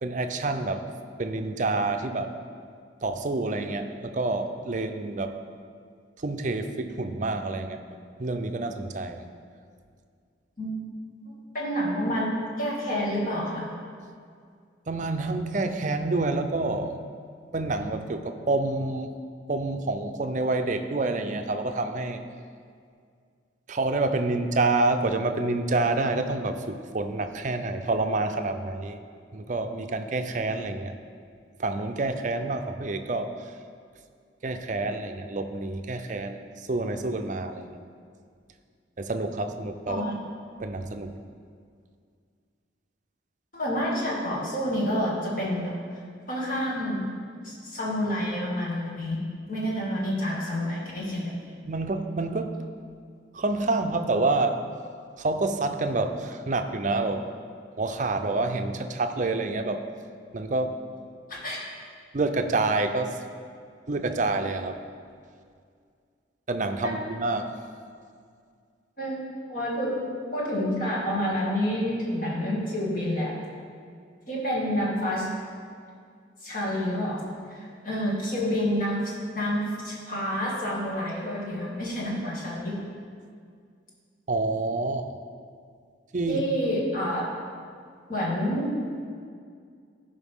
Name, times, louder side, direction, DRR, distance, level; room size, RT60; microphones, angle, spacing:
voice 1, 0.0-0.8 1.2-2.3 3.0-5.3 6.2-7.8 8.2-9.2 14.9-17.0 17.5-19.1 19.5-22.2 23.7-29.0 29.3-30.9 31.6-33.3 34.4-36.4 36.7-37.8 39.0-40.0 40.6-41.2 51.7-52.5 53.3-54.6 55.2-57.2 57.8-59.8 60.3-60.8 62.1-63.2 63.9-64.8 66.5-67.5 84.3-85.1 86.1-86.4, right 2 dB, 40° right, 7 dB, 0.5 m, -28 dB
voice 2, 11.2-13.7 39.9-40.1 43.5-45.7 46.3-47.0 47.4-49.2 49.5-51.4 61.3-61.6 69.0-70.0 70.3-73.4 74.3-75.3 76.4-82.8 86.3-87.3 88.1-88.7, equal, 45° left, -5 dB, 2.2 m, -28 dB
15.0 x 5.4 x 3.6 m, 2.2 s
head